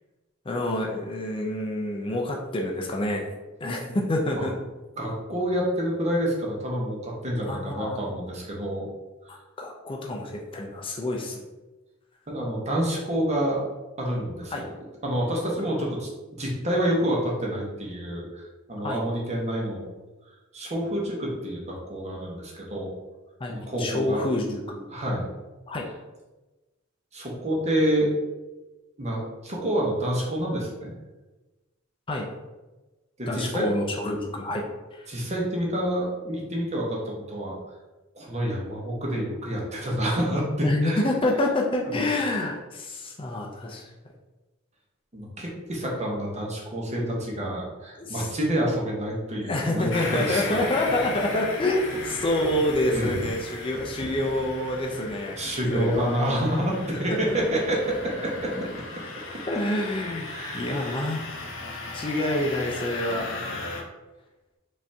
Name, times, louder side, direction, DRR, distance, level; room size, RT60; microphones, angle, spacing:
voice 1, 0.4-3.3 3.6-4.5 7.4-8.2 9.3-11.4 14.5-14.6 18.8-19.0 23.4-24.9 25.7-25.9 32.1-32.3 33.3-34.6 34.9-35.1 40.6-43.9 48.0-48.3 49.5-55.4 55.7-56.2 57.3-57.4 58.5-58.6 59.5-61.2 61.9-63.3, left 1 dB, 25° left, 0 dB, 0.4 m, -27 dB
voice 2, 5.0-8.9 12.3-13.6 14.0-14.7 15.0-19.9 20.5-22.9 23.5-24.2 24.9-25.3 27.1-28.1 29.0-30.9 33.2-33.7 35.1-37.6 38.1-41.0 41.9-42.0 45.1-50.6 52.9-53.2 55.3-58.5 60.3-60.6, equal, 35° right, -2 dB, 1.0 m, -28 dB
sound 1, 49.9-63.8, left 2 dB, 65° left, 0.8 m, -36 dB
5.2 x 2.7 x 3.4 m, 1.1 s
head